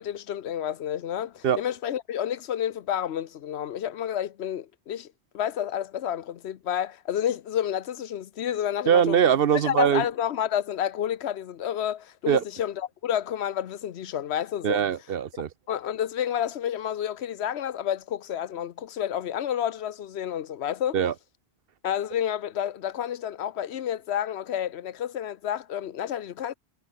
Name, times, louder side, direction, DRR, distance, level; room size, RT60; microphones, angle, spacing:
voice 1, 0.0-9.2 9.6-14.8 15.7-21.0 21.8-26.5, left 10 dB, 80° left, 1.0 m, -30 dB
voice 2, 8.9-10.0 12.3-12.4 14.6-15.5 20.9-21.1, right 8 dB, 65° right, 0.9 m, -22 dB
omnidirectional pair, 1.1 m